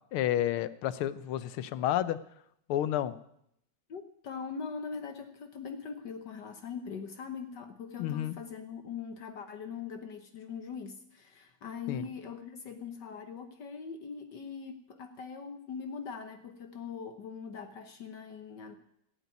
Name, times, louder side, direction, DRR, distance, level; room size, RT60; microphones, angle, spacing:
voice 1, 0.1-2.2 2.7-3.2 8.0-8.3 11.9-12.0, left 12 dB, 80° left, 15 dB, 1.7 m, -30 dB
voice 2, 3.9-18.8, left 6 dB, 60° left, 8 dB, 1.6 m, -41 dB
17.0 x 8.3 x 9.3 m, 0.75 s
omnidirectional pair, 2.3 m